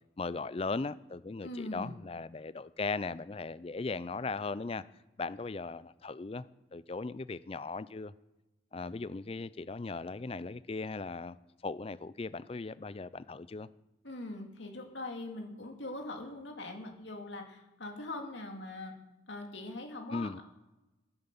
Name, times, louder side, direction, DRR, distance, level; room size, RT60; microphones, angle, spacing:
voice 1, 0.2-4.8 5.2-6.5 6.7-8.1 8.7-11.4 11.6-13.7 20.1-20.4, left 3 dB, 30° left, 16 dB, 0.4 m, -38 dB
voice 2, 1.4-1.9 14.0-18.9 19.3-20.4, left 2 dB, 70° left, 3 dB, 2.2 m, -42 dB
12.5 x 9.7 x 7.0 m, 1.0 s
head